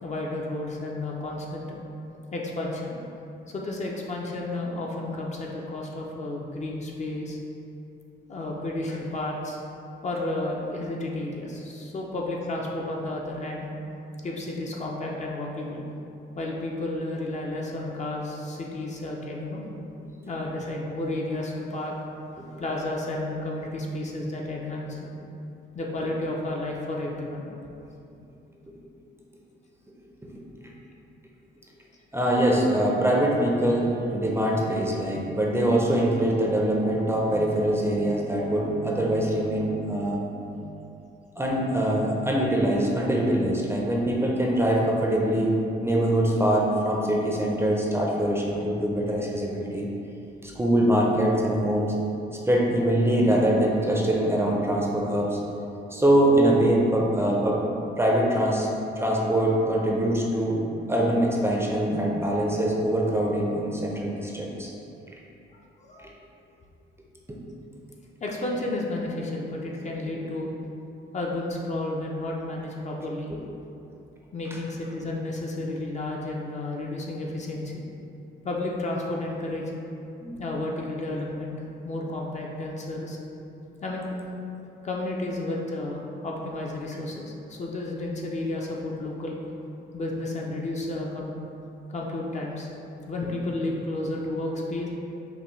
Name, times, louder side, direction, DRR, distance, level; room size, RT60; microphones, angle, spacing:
voice 1, 0.0-1.8 2.3-3.1 3.5-7.4 8.3-9.6 10.0-13.7 14.2-15.9 16.3-19.6 20.3-25.1 25.7-27.5 65.8-66.1 68.2-70.5 71.1-73.3 74.3-77.8 78.4-79.7 80.4-83.2 83.8-84.2 84.8-89.4 89.9-91.3 91.9-92.7 93.1-94.9, left 2 dB, 35° left, -2 dB, 0.6 m, -32 dB
voice 2, 32.1-40.2 41.4-45.6 45.8-49.9 50.4-51.9 52.5-55.4 55.9-57.6 58.0-58.7 59.0-64.7 66.0-66.1 67.3-67.4 73.3-73.4 80.2-80.4, right 1 dB, 10° right, -3 dB, 0.5 m, -23 dB
sound 1, 33.2-40.6, right 3 dB, 85° left, 0.8 m, -43 dB
5.5 x 2.2 x 3.1 m, 2.7 s
cardioid pair, 90°, 20 cm